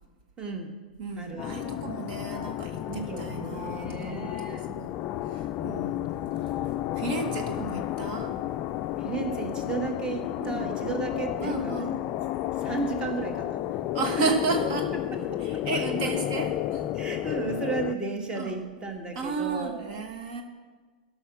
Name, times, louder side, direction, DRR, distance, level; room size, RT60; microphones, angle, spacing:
voice 1, 0.4-0.7 1.2-1.7 2.9-4.6 9.0-11.9 12.6-13.8 14.2-14.3 15.3-16.1 16.9-20.0, right 4 dB, 20° right, 4 dB, 1.5 m, -34 dB
voice 2, 1.0-5.0 5.2-6.1 6.3-6.5 6.9-8.3 10.4-10.7 11.4-12.0 13.9-14.9 15.4-16.9 18.3-18.6 19.1-20.4, right 4 dB, 50° right, 4 dB, 1.3 m, -33 dB
sound 1, 1.4-18.0, left 13 dB, 35° left, 0.4 m, -32 dB
13.5 x 5.8 x 6.1 m, 1.4 s
hypercardioid pair, 115°, 5 cm